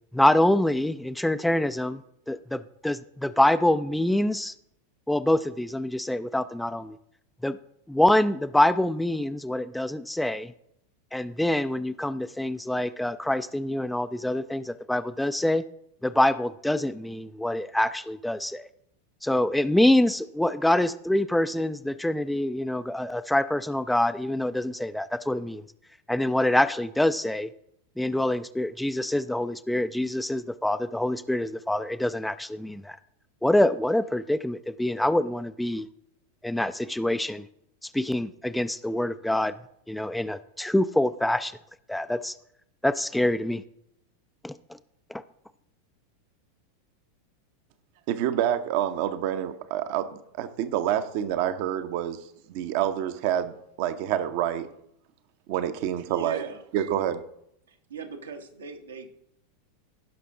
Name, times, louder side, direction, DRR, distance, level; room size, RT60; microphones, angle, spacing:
voice 1, 0.1-2.0 2.3-4.5 5.1-7.0 7.4-7.6 7.9-10.5 11.1-15.7 16.0-18.7 19.2-25.6 26.1-27.5 28.0-33.0 33.4-35.9 36.4-37.5 37.8-39.5 39.9-41.6 41.9-42.4 42.8-43.6 44.4-44.6 45.1-45.2, left 1 dB, 5° left, 12 dB, 0.4 m, -25 dB
voice 2, 48.1-50.1 50.4-52.2 52.5-54.7 55.5-56.4 56.7-57.2, right 11 dB, 50° right, 11 dB, 0.8 m, -27 dB
voice 3, 56.0-56.6 57.7-59.1, right 5 dB, 75° right, 4 dB, 1.2 m, -40 dB
16.5 x 5.9 x 3.6 m, 0.74 s
figure-of-eight pair, 90°, 0 cm